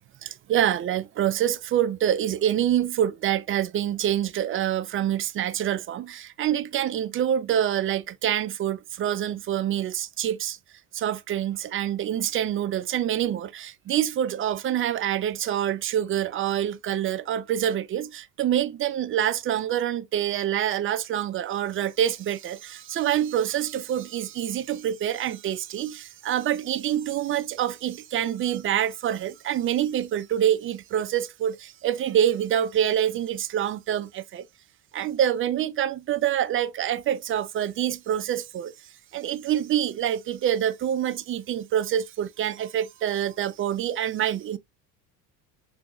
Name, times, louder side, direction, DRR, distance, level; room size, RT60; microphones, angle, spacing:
voice 1, 0.2-10.6 10.9-34.4 34.9-38.7 39.1-44.6, right 10 dB, 30° right, 0.3 m, -26 dB
3.6 x 2.9 x 2.3 m
hypercardioid pair, 75°, 47 cm